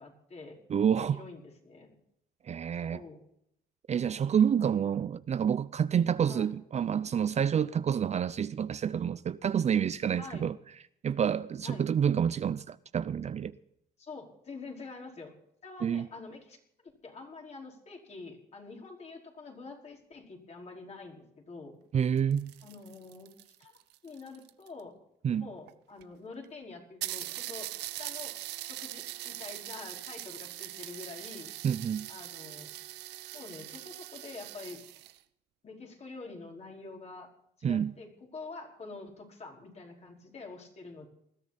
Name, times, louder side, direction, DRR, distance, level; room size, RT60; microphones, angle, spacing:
voice 1, 0.0-0.6 0.9-2.0 2.7-3.2 4.5-4.9 6.3-6.5 10.2-10.5 11.6-11.9 14.0-15.3 15.6-16.6 16.8-21.8 22.6-23.3 23.6-25.0 25.4-27.7 28.0-31.5 32.1-32.7 33.3-34.8 35.6-37.3 37.6-41.1, left 3 dB, 40° left, 4.9 m, -46 dB
voice 2, 0.7-1.2 2.5-3.0 3.9-10.5 11.0-13.5 15.8-16.1 21.9-22.5 25.2-25.5 31.6-32.1 37.6-37.9, right 8 dB, 40° right, 0.6 m, -28 dB
sound 1, 22.0-24.8 25.7-25.8 26.0-26.1 26.4-26.5 27.0-35.2, right 15 dB, 80° right, 0.8 m, -42 dB
20.5 x 13.0 x 4.2 m
cardioid pair, 90°, 17 cm